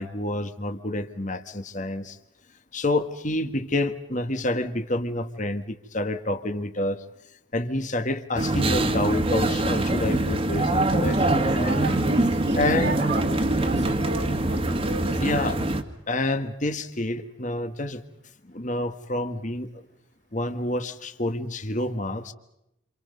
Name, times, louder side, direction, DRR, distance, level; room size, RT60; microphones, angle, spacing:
voice 1, 0.0-2.2 2.7-7.0 7.5-11.2 11.5-11.7 12.6-12.9 15.2-15.6 16.1-18.0 18.5-19.7 20.3-22.3, left 1 dB, 35° left, 9 dB, 1.7 m, -28 dB
sound 1, 8.4-15.8, right 2 dB, 25° right, 2.0 m, -24 dB
voice 2, 11.0-15.5, right 2 dB, 50° right, 8 dB, 2.8 m, -33 dB
29.5 x 28.0 x 5.4 m, 0.84 s
head